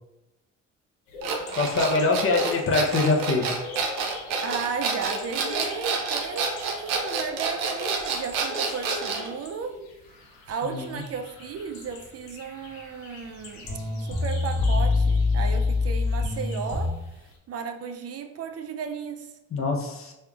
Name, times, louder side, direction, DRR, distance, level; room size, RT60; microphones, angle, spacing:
sound 1, 1.1-17.4, left 2 dB, 90° left, 0.9 m, -41 dB
sound 2, 1.2-9.3, right 5 dB, 85° right, 0.7 m, -28 dB
voice 1, 1.5-3.6 10.6-11.0 19.5-20.1, left 3 dB, 40° left, 2 dB, 0.8 m, -24 dB
voice 2, 4.4-9.7 10.5-19.3, right 6 dB, 45° right, 6 dB, 0.4 m, -34 dB
sound 3, 13.3-13.4 13.6-16.9, left 3 dB, 10° left, 1.1 m, -24 dB
5.3 x 3.2 x 2.3 m, 0.98 s
supercardioid pair, 85°, 34 cm